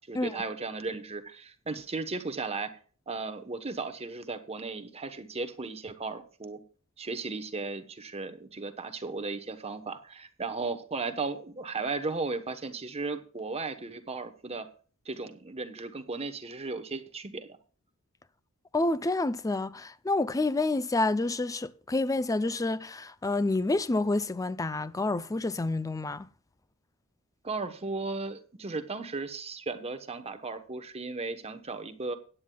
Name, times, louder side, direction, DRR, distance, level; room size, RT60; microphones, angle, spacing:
voice 1, 0.1-2.7 3.1-6.6 7.0-14.7 15.1-17.6 27.4-32.1, right 3 dB, 30° right, 1.0 m, -35 dB
voice 2, 18.7-26.3, left 2 dB, 15° left, 0.4 m, -28 dB
17.0 x 10.0 x 2.3 m
head